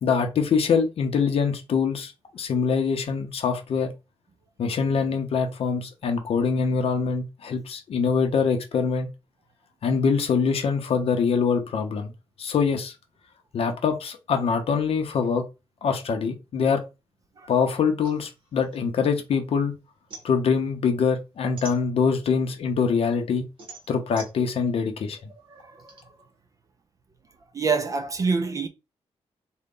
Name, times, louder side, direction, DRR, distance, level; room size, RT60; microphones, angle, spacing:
voice 1, 0.0-3.9 4.6-9.1 9.8-12.1 12.4-12.9 13.5-15.4 15.8-16.8 17.5-19.7 20.2-23.5 23.9-25.3, left 5 dB, 60° left, 0.6 m, -24 dB
sound 1, 18.0-19.5 19.8-22.4 22.8-26.0, right 4 dB, 50° right, 1.2 m, -45 dB
voice 2, 25.5-26.0 27.5-28.7, right 4 dB, 30° right, 0.3 m, -26 dB
3.8 x 2.1 x 3.6 m
wide cardioid pair, 170°, 11 cm